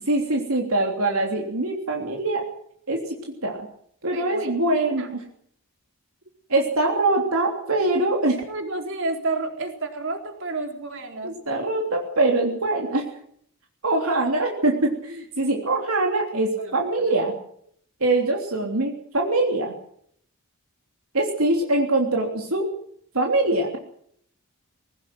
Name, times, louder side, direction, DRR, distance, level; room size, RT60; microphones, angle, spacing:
voice 1, 0.1-2.4 2.9-3.7 4.0-5.2 6.5-8.4 11.2-13.1 13.8-17.3 18.0-19.7 21.1-22.6 23.1-23.8, right 2 dB, 75° right, 1 dB, 3.4 m, -23 dB
voice 2, 4.1-5.1 8.5-11.3 16.6-17.1, right 3 dB, 60° right, 4 dB, 3.9 m, -31 dB
20.5 x 18.5 x 7.9 m, 0.66 s
head